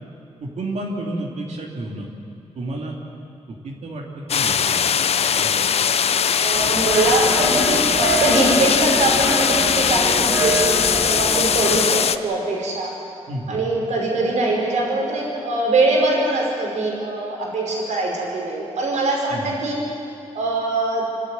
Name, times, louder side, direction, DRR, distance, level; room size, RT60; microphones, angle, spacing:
voice 1, 0.4-2.1 2.5-2.9 3.6-4.9 5.3-5.7 13.3-13.7 19.3-19.5, right 1 dB, 70° right, -1 dB, 3.0 m, -31 dB
sound 1, 4.3-12.2, left 7 dB, 60° left, 0.7 m, -20 dB
voice 2, 6.3-12.9 13.5-19.8 20.3-21.0, right 2 dB, 85° right, -2 dB, 5.5 m, -22 dB
sound 2, 6.5-11.9, right 1 dB, 15° right, 1.5 m, -27 dB
28.5 x 12.5 x 9.4 m, 2.7 s
wide cardioid pair, 140°, 12 cm